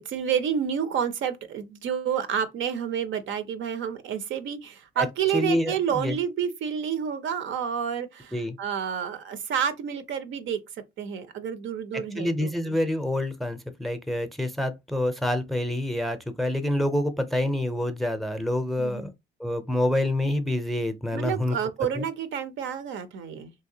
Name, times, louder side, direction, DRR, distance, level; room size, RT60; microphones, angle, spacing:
voice 1, 0.1-10.6 11.0-12.7 18.8-19.1 21.1-23.5, right 8 dB, 75° right, 0.6 m, -29 dB
voice 2, 5.3-6.2 8.3-8.6 11.9-19.1 19.4-21.6 21.9-22.0, left 1 dB, ahead, 0.5 m, -27 dB
3.1 x 2.8 x 2.7 m
cardioid pair, 90°, 20 cm